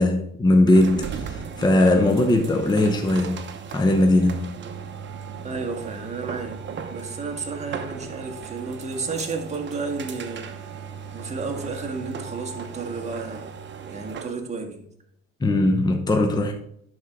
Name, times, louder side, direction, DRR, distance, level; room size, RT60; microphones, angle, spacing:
voice 1, 0.0-4.6 15.4-16.5, left 1 dB, 15° left, 0.8 m, -20 dB
Electric Roller Door UP, 0.7-14.4, right 6 dB, 40° right, 0.9 m, -37 dB
voice 2, 5.4-6.6 6.9-10.7 11.1-13.5 13.9-14.8, right 4 dB, 20° right, 1.7 m, -32 dB
11.0 x 4.5 x 3.7 m
cardioid pair, 105°, 29 cm